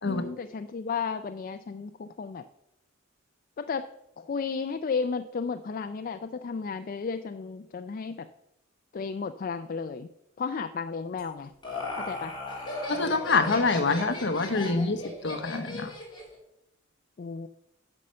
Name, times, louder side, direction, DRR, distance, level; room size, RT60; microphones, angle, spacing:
voice 1, 0.0-2.4 3.6-3.9 4.2-8.3 8.9-10.1 10.4-11.5 12.0-12.4 17.2-17.5, left 5 dB, 45° left, 9 dB, 0.4 m, -33 dB
Laughter, 11.2-16.4, left 2 dB, 20° left, 2.6 m, -37 dB
voice 2, 12.9-15.9, left 3 dB, 60° left, 9 dB, 0.9 m, -26 dB
9.8 x 6.3 x 5.5 m, 0.87 s
head